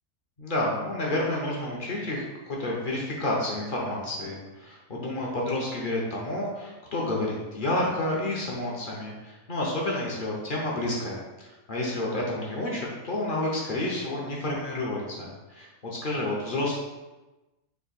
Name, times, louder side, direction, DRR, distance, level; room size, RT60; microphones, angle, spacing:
voice 1, 0.4-16.8, left 1 dB, 50° left, -3 dB, 0.6 m, -30 dB
3.4 x 2.5 x 4.0 m, 1.1 s
omnidirectional pair, 1.5 m